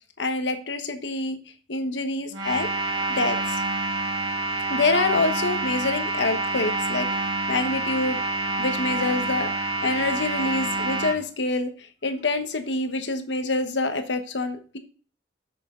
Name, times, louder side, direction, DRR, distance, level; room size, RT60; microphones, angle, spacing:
voice 1, 0.2-1.4 1.7-2.7 3.2-3.6 4.7-7.1 7.5-8.2 8.6-14.8, left 3 dB, 70° left, 7 dB, 1.2 m, -26 dB
sound 1, 2.3-11.1, right 2 dB, 70° right, 2.4 m, -27 dB
7.6 x 7.0 x 3.8 m, 0.41 s
head